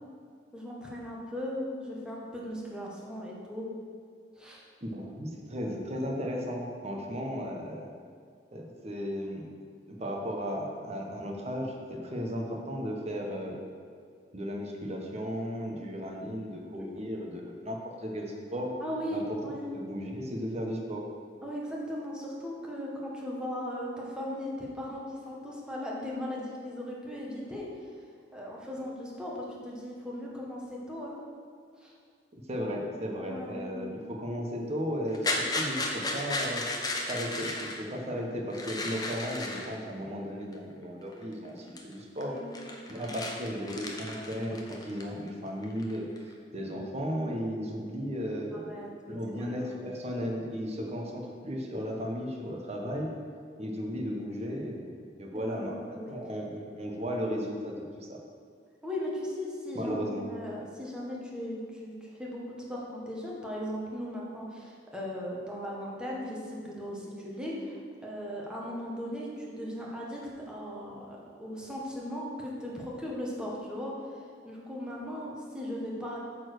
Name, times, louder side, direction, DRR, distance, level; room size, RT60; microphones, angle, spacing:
voice 1, 0.5-3.7 4.4-4.6 16.8-16.9 18.8-19.7 21.4-27.7 28.3-30.6 30.9-31.2 31.8-31.9 33.2-33.9 42.3-43.2 48.5-50.0 55.3-56.2 58.8-70.2 70.5-76.2, equal, 5° right, -4 dB, 1.5 m, -38 dB
voice 2, 4.8-7.9 8.5-9.5 9.9-13.6 14.3-18.7 19.1-19.4 19.6-21.1 32.3-36.6 37.1-42.4 42.9-48.7 49.1-53.1 53.6-54.9 55.2-58.2 59.7-60.3, equal, 40° right, 0 dB, 1.2 m, -35 dB
sound 1, 35.1-37.8 38.5-39.7 40.5-40.6 41.1-41.5 41.8-41.9 42.2-45.3 45.6-46.3, left 2 dB, 20° left, 0.9 m, -34 dB
8.9 x 4.4 x 6.7 m, 2.2 s
head